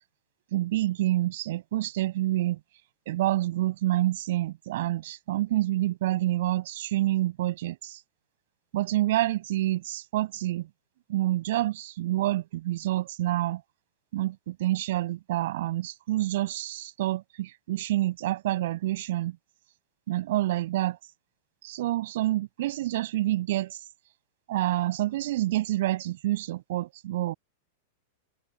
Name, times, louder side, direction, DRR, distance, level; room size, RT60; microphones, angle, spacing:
voice 1, 0.5-2.6 3.1-8.0 8.7-10.7 11.1-13.6 14.1-19.4 20.1-21.0 21.6-23.8 24.5-27.3, right 15 dB, 60° right, 7.8 m, -28 dB
figure-of-eight pair, 95°, 0 cm